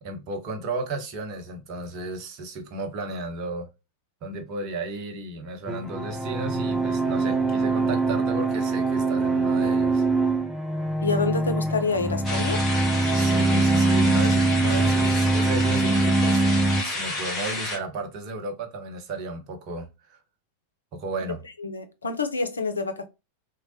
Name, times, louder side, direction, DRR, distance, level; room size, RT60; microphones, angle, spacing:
voice 1, 0.0-3.7 4.2-10.1 13.1-16.4 16.8-20.2 20.9-21.4, right 2 dB, 40° right, 0.7 m, -34 dB
sound 1, 5.7-16.8, right 3 dB, 5° right, 0.5 m, -23 dB
voice 2, 11.0-12.6 21.6-23.1, left 4 dB, 75° left, 0.4 m, -27 dB
sound 2, 12.2-17.8, left 2 dB, 15° left, 1.1 m, -31 dB
3.1 x 2.0 x 2.6 m
figure-of-eight pair, 90°, 0 cm